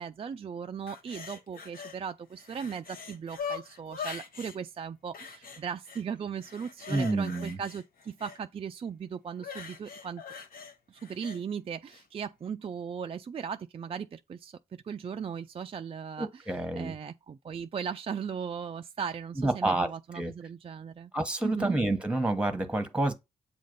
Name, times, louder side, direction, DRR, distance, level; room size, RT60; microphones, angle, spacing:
voice 1, 0.0-10.2 10.9-21.1 21.4-21.8, right 7 dB, 35° right, 0.3 m, -38 dB
sound 1, 0.9-2.0 2.3-4.6 5.1-6.0 6.4-8.4 9.4-11.4 11.9-12.0, left 6 dB, 60° left, 1.0 m, -42 dB
voice 2, 6.9-7.6 16.2-16.9 19.4-19.9 20.1-20.3 21.1-23.1, right 2 dB, 5° right, 1.1 m, -28 dB
7.4 x 2.5 x 5.2 m
supercardioid pair, 50°, 17 cm